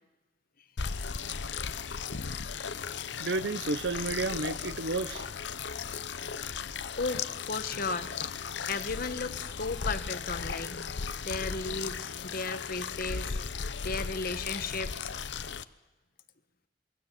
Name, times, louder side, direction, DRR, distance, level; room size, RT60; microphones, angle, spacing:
sound 1, 0.8-15.6, left 6 dB, 80° left, 0.8 m, -36 dB
voice 1, 3.2-5.2, right 3 dB, 80° right, 14 dB, 1.1 m, -31 dB
voice 2, 7.0-8.3 8.7-10.8 11.2-13.4 13.8-15.2, left 3 dB, 55° left, 9 dB, 1.6 m, -35 dB
27.0 x 23.0 x 8.5 m, 1.1 s
head